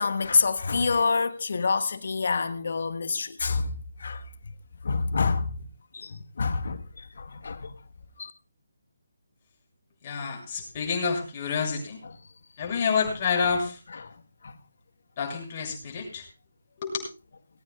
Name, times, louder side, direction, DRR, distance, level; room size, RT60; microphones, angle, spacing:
voice 1, 0.0-3.7 4.0-4.2 4.8-5.5 5.9-7.7 8.2-8.3 12.0-12.2 13.9-14.1 14.4-14.5, left 4 dB, 55° left, 1.4 m, -27 dB
voice 2, 10.0-12.0 12.6-13.8 15.2-16.2 16.8-17.0, left 5 dB, 30° left, 7.3 m, -28 dB
20.5 x 18.0 x 2.4 m
figure-of-eight pair, 145°, 0 cm